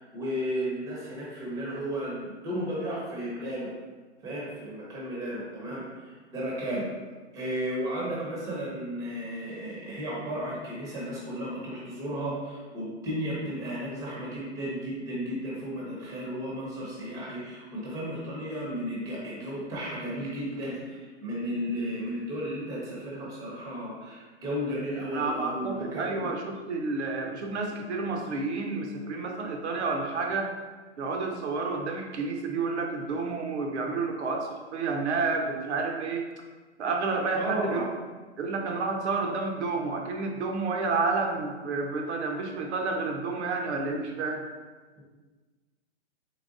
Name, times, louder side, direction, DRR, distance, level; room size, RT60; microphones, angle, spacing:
voice 1, 0.0-3.7 4.2-6.9 7.3-26.3 37.3-37.9 45.0-45.1, equal, 10° right, -5 dB, 0.6 m, -34 dB
voice 2, 25.1-30.5 31.0-36.3 36.8-37.9 38.4-44.4, right 3 dB, 75° right, 2 dB, 0.7 m, -30 dB
3.9 x 3.3 x 2.5 m, 1.3 s
hypercardioid pair, 150°, 35 cm